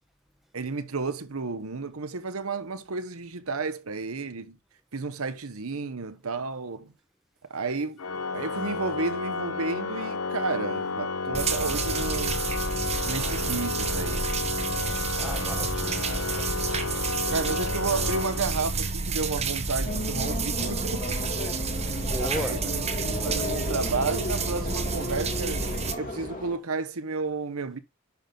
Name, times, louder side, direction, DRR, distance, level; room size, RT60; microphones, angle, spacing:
voice 1, 0.5-4.6 4.9-6.9 7.5-8.0 8.3-12.4 13.0-14.2 17.3-21.2 22.2-25.7 25.9-27.8, right 4 dB, 75° right, 1.0 m, -32 dB
Organ, 8.0-18.9, left 4 dB, 90° left, 0.9 m, -32 dB
sound 1, 11.3-25.9, right 4 dB, 30° right, 1.2 m, -30 dB
voice 2, 15.1-17.5 21.8-22.7 23.0-23.5, equal, ahead, 1.1 m, -38 dB
sound 2, 19.8-26.6, left 1 dB, 40° left, 2.6 m, -34 dB
10.5 x 6.0 x 3.8 m
head